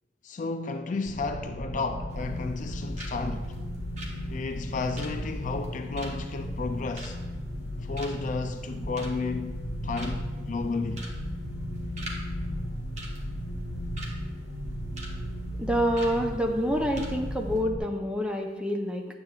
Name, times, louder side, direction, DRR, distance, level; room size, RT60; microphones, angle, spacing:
voice 1, 0.2-3.5 4.3-7.2 7.8-11.0, left 3 dB, 45° left, 0.4 m, -32 dB
sound 1, 1.0-17.8, equal, 75° left, 0.8 m, -35 dB
sound 2, 2.1-2.7 3.0-3.2 3.4-7.7 8.0-8.3 8.7-9.3 9.7-9.8 10.0-10.4 10.9-11.2 11.4-12.2 12.5-12.6 13.0-14.2 14.5-15.1 15.4-15.6 15.9-16.2 16.6-16.7 17.0-17.2 17.4-17.6, right 1 dB, 40° right, 1.2 m, -43 dB
voice 2, 15.6-19.1, equal, 5° right, 0.6 m, -27 dB
9.5 x 7.6 x 2.4 m
head